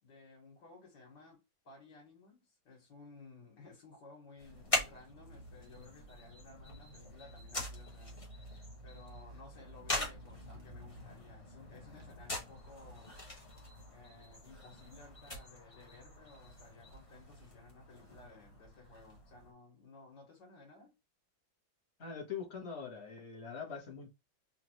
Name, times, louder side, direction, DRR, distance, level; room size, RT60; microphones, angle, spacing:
voice 1, 0.0-13.1 13.9-21.0, left 3 dB, 60° left, 2.4 m, -57 dB
sound 1, 4.4-19.5, left 1 dB, 20° left, 1.1 m, -43 dB
voice 2, 22.0-24.1, left 6 dB, 35° left, 1.5 m, -43 dB
4.2 x 2.8 x 3.0 m
omnidirectional pair, 2.1 m